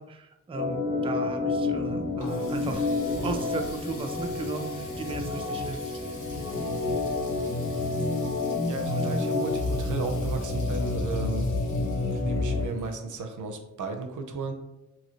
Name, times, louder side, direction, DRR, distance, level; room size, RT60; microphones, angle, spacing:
voice 1, 0.0-2.9 3.2-5.9 8.8-9.2, right 4 dB, 20° right, 5 dB, 0.3 m, -36 dB
Organ, 0.5-12.7, left 3 dB, 60° left, 1.3 m, -29 dB
Water tap faucet, 1.8-13.4, left 2 dB, 85° left, 1.0 m, -48 dB
voice 2, 8.7-11.5 12.1-14.5, right 4 dB, 80° right, 5 dB, 0.5 m, -35 dB
2.8 x 2.7 x 2.7 m, 0.93 s
cardioid pair, 70°, 30 cm